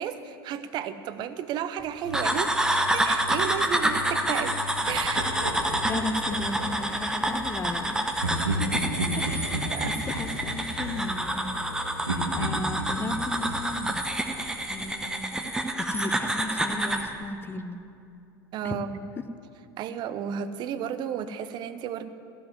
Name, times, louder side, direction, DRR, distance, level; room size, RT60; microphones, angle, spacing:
voice 1, 0.0-2.6 2.9-4.6 4.9-5.4 9.7-9.9 18.5-18.9 19.8-22.1, right 9 dB, 40° right, 12 dB, 0.6 m, -33 dB
sound 1, 2.0-12.9, left 4 dB, 65° left, 1.4 m, -42 dB
sound 2, 2.1-17.1, right 1 dB, 5° right, 0.9 m, -28 dB
Laughter, 4.9-7.0 8.2-11.7 12.1-14.8, right 1 dB, 80° right, 1.3 m, -33 dB
voice 2, 5.9-8.0 9.1-9.6 10.0-11.6 12.3-14.0 14.7-15.5 15.8-17.8 18.6-18.8 19.2-19.3, left 2 dB, 20° left, 10 dB, 0.6 m, -35 dB
14.5 x 5.3 x 9.3 m, 2.6 s
figure-of-eight pair, 75°, 12 cm